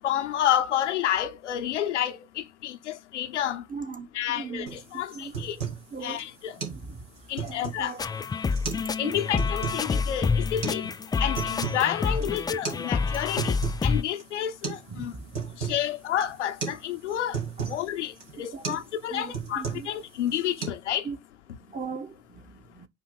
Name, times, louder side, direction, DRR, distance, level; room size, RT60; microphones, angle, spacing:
voice 1, 0.0-3.7 4.1-5.6 6.0-6.6 7.3-8.0 9.0-21.1, left 10 dB, 80° left, 0.8 m, -30 dB
voice 2, 3.7-5.3 5.9-6.2 6.6-7.0 7.4-8.0 9.0-9.2 12.2-12.3 14.9-15.3 17.6-17.7 18.5-18.8 19.1-19.9 21.0-21.2 21.7-22.9, right 5 dB, 25° right, 1.2 m, -39 dB
sound 1, 4.7-4.8 5.1-5.9 6.2-6.3 6.6-6.8 7.2-7.9 8.5-8.9 9.2-9.8 10.6-10.8 11.2-11.9 12.1-12.3 12.6-12.8 13.1-13.9 14.2-14.3 14.6-14.9 15.1-15.8 16.2-16.4 16.6-16.8 17.1-17.8 18.2-18.4 18.6-18.9 19.1-20.0 20.3-20.7, right 6 dB, 75° right, 2.0 m, -34 dB
sound 2, 8.0-14.0, left 5 dB, 10° left, 0.3 m, -28 dB
8.7 x 3.0 x 5.9 m
figure-of-eight pair, 55°, 35 cm